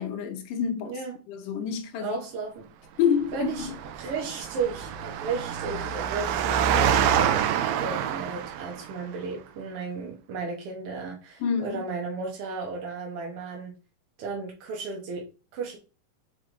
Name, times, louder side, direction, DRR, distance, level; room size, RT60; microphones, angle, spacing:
voice 1, 0.0-2.2 3.0-3.8 11.4-11.8, left 7 dB, 75° left, 2.2 m, -28 dB
voice 2, 2.0-2.7 3.3-3.7 4.0-7.5 7.8-13.7 14.2-15.3 15.5-15.8, right 4 dB, 65° right, 1.5 m, -34 dB
Engine, 3.3-9.0, right 8 dB, 85° right, 2.3 m, -27 dB
5.9 x 4.8 x 3.7 m
omnidirectional pair, 4.2 m